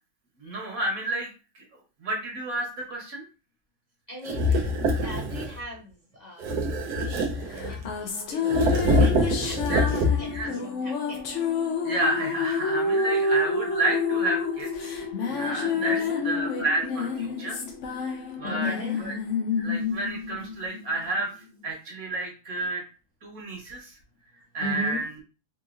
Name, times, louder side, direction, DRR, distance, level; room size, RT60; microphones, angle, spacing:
voice 1, 0.4-1.3 2.0-3.2 9.7-9.8 10.3-10.5 11.8-14.7 15.2-16.0 16.2-17.6 18.4-18.7 19.0-19.1 19.6-21.3 21.6-22.8 23.2-23.9 24.5-25.0, right 2 dB, 65° right, -1 dB, 1.6 m, -30 dB
voice 2, 4.1-6.4 6.9-8.6 9.0-11.2 13.1-13.2 15.7-16.3 18.4-19.0 24.6-25.1, left 1 dB, 30° left, -4 dB, 1.0 m, -39 dB
sound 1, 4.3-5.6 6.4-7.9 8.4-10.4, left 1 dB, 85° right, 1.3 m, -24 dB
sound 2, 7.6-21.2, left 4 dB, 60° left, 0.9 m, -28 dB
4.7 x 2.6 x 2.5 m, 0.33 s
omnidirectional pair, 1.7 m